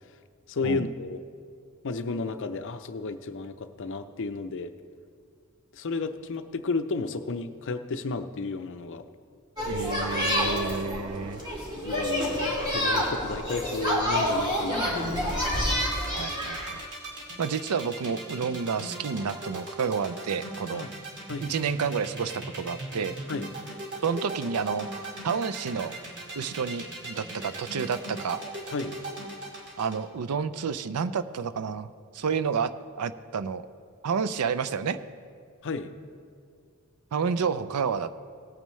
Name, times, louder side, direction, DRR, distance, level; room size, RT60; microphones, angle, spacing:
voice 1, 0.5-1.2 1.8-4.7 5.7-9.0 11.7-12.4 12.7-15.7 20.7-20.9 21.3-21.5 23.3-23.5 28.7-28.9 35.6-35.9, left 3 dB, 55° left, 9 dB, 0.6 m, -32 dB
sound 1, 9.6-16.7, equal, 20° right, 2.4 m, -28 dB
voice 2, 9.7-11.4 16.1-16.8 17.4-20.9 21.4-23.2 24.0-24.9 25.2-26.0 26.3-28.4 29.8-33.7 34.0-35.0 37.1-38.1, right 6 dB, 90° right, 13 dB, 0.5 m, -30 dB
sound 2, 15.2-30.0, right 2 dB, 55° right, 2.1 m, -38 dB
18.0 x 8.9 x 3.2 m, 2.2 s
head